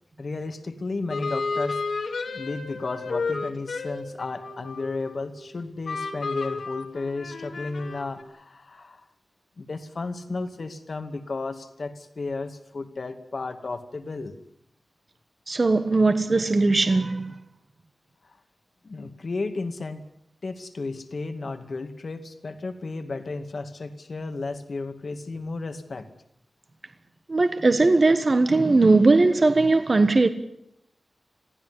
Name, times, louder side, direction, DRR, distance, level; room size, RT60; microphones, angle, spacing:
voice 1, 0.2-1.8 2.3-9.0 9.6-14.4 18.8-20.0 20.4-26.1, left 3 dB, 55° left, 2.3 m, -33 dB
sound 1, 1.1-5.5 5.8-8.2, left 4 dB, 80° left, 2.7 m, -32 dB
voice 2, 15.5-17.3 27.3-30.3, right 3 dB, 40° right, 1.3 m, -19 dB
22.5 x 15.5 x 9.8 m
wide cardioid pair, 110°, 0 cm